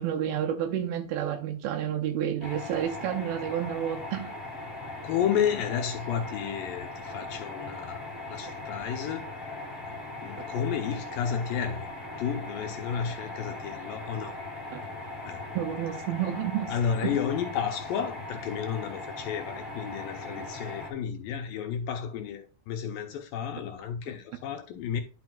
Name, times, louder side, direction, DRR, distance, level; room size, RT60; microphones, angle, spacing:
voice 1, 0.0-4.3 14.7-14.8 15.6-16.7 17.0-17.2, right 10 dB, 80° right, 2.6 m, -30 dB
sound 1, 2.4-20.9, left 2 dB, 10° left, 2.0 m, -39 dB
voice 2, 5.0-10.0 10.2-11.9 12.2-14.4 15.2-15.4 16.7-25.0, left 8 dB, 75° left, 2.3 m, -32 dB
10.5 x 6.2 x 2.4 m
omnidirectional pair, 4.4 m